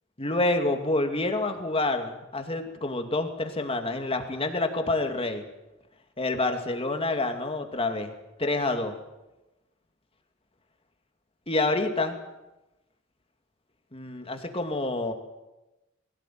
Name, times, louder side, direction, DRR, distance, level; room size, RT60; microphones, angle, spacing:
voice 1, 0.2-5.4 6.2-8.1 8.4-9.0 11.5-12.2 13.9-15.1, left 2 dB, 30° left, 5 dB, 2.5 m, -27 dB
21.5 x 17.0 x 9.4 m, 1.0 s
head